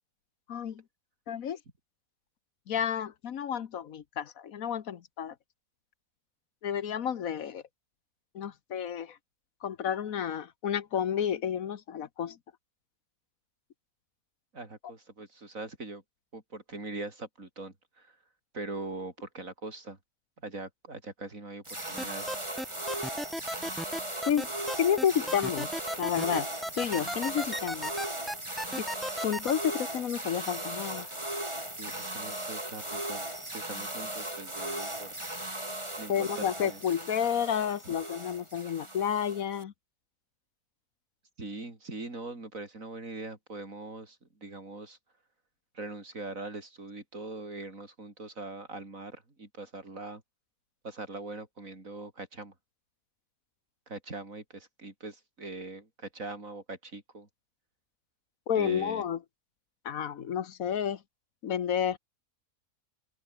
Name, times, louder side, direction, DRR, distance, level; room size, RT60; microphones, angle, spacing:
voice 1, 0.5-0.8 1.3-1.6 2.7-5.3 6.6-7.6 8.3-9.2 9.6-12.4 24.3-24.5 24.8-25.7 26.0-26.5 26.8-27.9 28.8-28.9 29.2-31.1 36.1-39.7 58.5-59.2 59.8-61.0 61.4-62.0, left 8 dB, 75° left, 1.5 m, -30 dB
voice 2, 14.5-16.0 16.3-18.2 18.5-20.0 20.4-22.3 31.8-33.3 33.5-35.3 36.0-36.8 37.9-38.0 41.4-45.0 45.7-50.2 50.8-52.5 53.9-57.3 58.5-59.0, right 2 dB, 65° right, 4.7 m, -42 dB
sound 1, 21.7-39.6, right 1 dB, 20° right, 3.8 m, -37 dB
sound 2, 22.0-29.5, equal, ahead, 1.0 m, -34 dB
open air
omnidirectional pair, 1.5 m